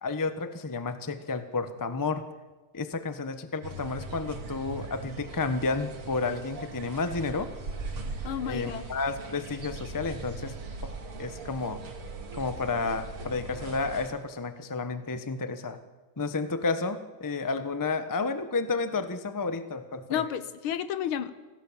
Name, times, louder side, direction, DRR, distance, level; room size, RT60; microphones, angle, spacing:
voice 1, 0.0-2.3 2.7-7.5 8.4-10.6 10.8-10.9 11.2-11.8 12.3-15.8 16.2-20.2, left 4 dB, 15° left, 10 dB, 0.6 m, -31 dB
sound 1, 3.6-14.1, right 3 dB, 90° right, 3.1 m, -40 dB
voice 2, 8.2-8.9 20.1-21.3, left 9 dB, 75° left, 13 dB, 1.9 m, -31 dB
25.5 x 17.5 x 7.3 m, 1.2 s
omnidirectional pair, 2.3 m